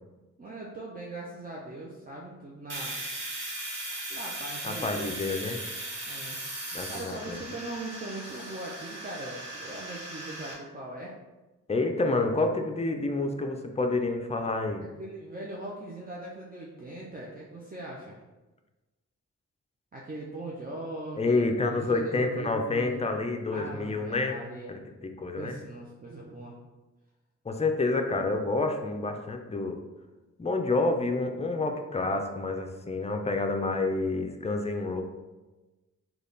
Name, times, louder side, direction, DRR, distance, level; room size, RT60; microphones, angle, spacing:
voice 1, 0.4-3.0 4.1-5.3 6.1-11.1 15.0-18.2 19.9-23.1 23.5-24.7 25.4-26.5, right 1 dB, 30° right, -3 dB, 0.6 m, -40 dB
Domestic sounds home sounds, 2.7-10.5, right 1 dB, 55° right, 1.3 m, -38 dB
voice 2, 4.6-5.6 6.7-7.4 11.7-14.8 21.2-24.4 24.7-24.8 25.2-25.6 27.4-29.8 30.4-35.0, left 3 dB, 20° left, 4 dB, 0.4 m, -28 dB
3.3 x 2.4 x 3.9 m, 1.1 s
cardioid pair, 70°, 30 cm